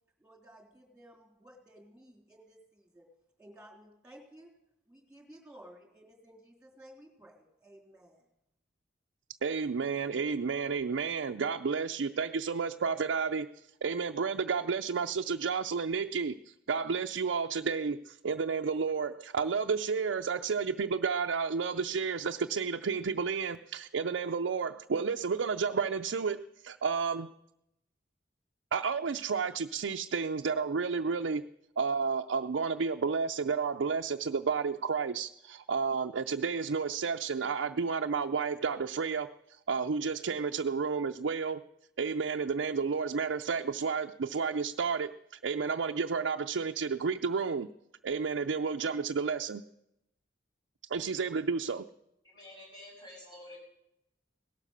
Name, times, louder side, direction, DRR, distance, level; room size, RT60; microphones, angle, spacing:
voice 1, 0.2-3.1 3.4-4.5 4.9-8.3, right 1 dB, 5° right, 3.6 m, -55 dB
voice 2, 9.4-13.5 13.8-27.3 28.7-31.4 31.8-41.6 42.0-45.1 45.4-47.7 48.0-49.6 50.9-51.9, right 5 dB, 90° right, 0.5 m, -31 dB
voice 3, 52.2-53.6, left 1 dB, 25° left, 7.1 m, -49 dB
18.0 x 12.5 x 6.6 m
head